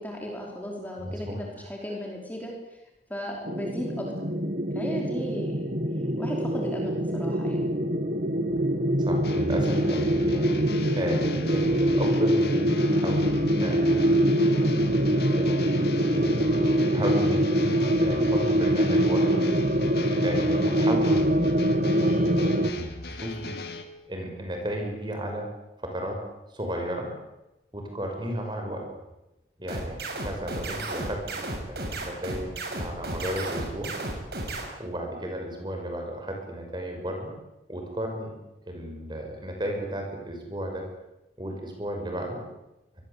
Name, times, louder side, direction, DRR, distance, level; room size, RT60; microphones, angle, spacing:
voice 1, 0.0-2.8 3.1-4.3 4.7-7.7 35.2-35.4, equal, 10° left, -1 dB, 4.9 m, -36 dB
voice 2, 1.0-1.4 9.0-14.3 15.4-16.4 16.9-17.7 18.0-19.4 20.2-21.6 22.0-22.5 23.1-23.6 24.1-25.5 25.8-26.2 26.5-27.1 27.7-28.9 29.6-33.9 34.8-37.3 37.7-38.4 38.7-40.8 41.4-42.4, equal, 25° right, 3 dB, 6.5 m, -34 dB
sound 1, 3.5-22.7, equal, 50° right, 1.6 m, -24 dB
sound 2, 9.2-23.8, left 2 dB, 65° left, 2.8 m, -38 dB
sound 3, 29.7-34.6, right 2 dB, 65° right, 6.8 m, -33 dB
25.5 x 22.0 x 8.6 m, 0.94 s
head